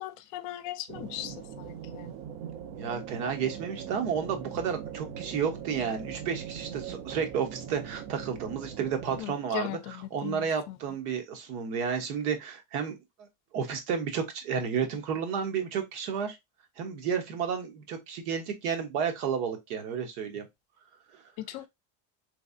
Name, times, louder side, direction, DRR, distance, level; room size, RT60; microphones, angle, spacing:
voice 1, 0.0-2.1 9.2-10.8 21.4-21.7, left 14 dB, 45° left, 0.5 m, -38 dB
sound 1, 0.9-9.2, right 8 dB, 55° right, 0.7 m, -41 dB
voice 2, 2.8-13.3 13.5-16.4 16.8-20.5, right 7 dB, 85° right, 1.2 m, -32 dB
3.3 x 3.2 x 2.6 m
cardioid pair, 155°, 43 cm